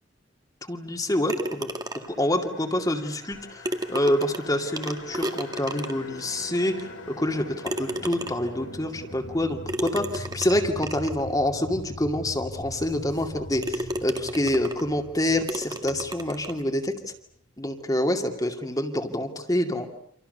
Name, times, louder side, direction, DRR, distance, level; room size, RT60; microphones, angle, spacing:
voice 1, 0.6-1.7 1.9-6.9 7.2-16.9 17.6-19.9, left 1 dB, 20° left, 5 dB, 2.5 m, -27 dB
sound 1, 1.3-2.3 3.3-3.4 3.6-6.2 6.8-6.9 7.6-8.6 9.7-11.2 11.9-12.0 12.5-12.6 13.1-13.3 13.6-14.9 15.5-16.6, right 1 dB, 20° right, 2.0 m, -33 dB
sound 2, 1.9-17.2, left 1 dB, 85° left, 4.9 m, -42 dB
29.5 x 27.0 x 6.8 m, 0.66 s
head